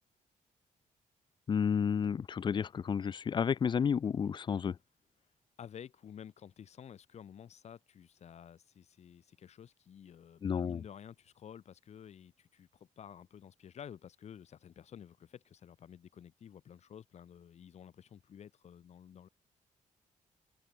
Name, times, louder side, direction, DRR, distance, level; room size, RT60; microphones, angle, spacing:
voice 1, 1.5-4.8 10.4-10.8, left 7 dB, 35° left, 0.5 m, -31 dB
voice 2, 5.6-19.3, left 8 dB, 50° left, 1.9 m, -52 dB
wide cardioid pair, 155°, 14 cm